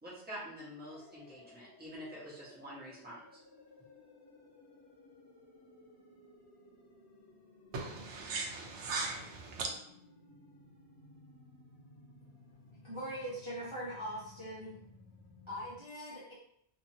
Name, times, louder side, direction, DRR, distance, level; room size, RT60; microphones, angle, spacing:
voice 1, 0.0-3.4, equal, 10° right, -8 dB, 1.0 m, -47 dB
sound 1, 0.9-15.8, left 2 dB, 70° left, 1.0 m, -59 dB
voice 2, 7.7-9.7, right 3 dB, 80° right, 1 dB, 1.0 m, -38 dB
voice 3, 12.8-14.7 15.5-16.3, equal, 30° right, -9 dB, 0.7 m, -41 dB
2.7 x 2.6 x 2.7 m, 0.70 s
omnidirectional pair, 1.2 m